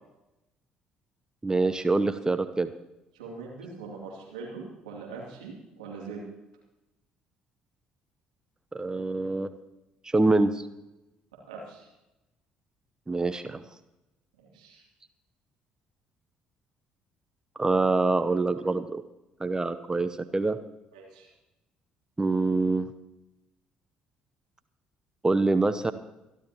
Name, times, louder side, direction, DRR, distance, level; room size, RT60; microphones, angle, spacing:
voice 1, 1.4-2.7 8.7-9.5 10.0-10.7 13.1-13.6 17.6-19.0 19.4-20.6 22.2-22.9 25.2-25.9, right 3 dB, 20° right, 11 dB, 0.8 m, -25 dB
voice 2, 3.1-6.2 11.5-11.9 14.5-14.8 18.2-18.3 20.9-21.3, right 4 dB, 80° right, -3 dB, 2.9 m, -42 dB
24.0 x 12.0 x 3.0 m, 0.95 s
figure-of-eight pair, 50°, 4 cm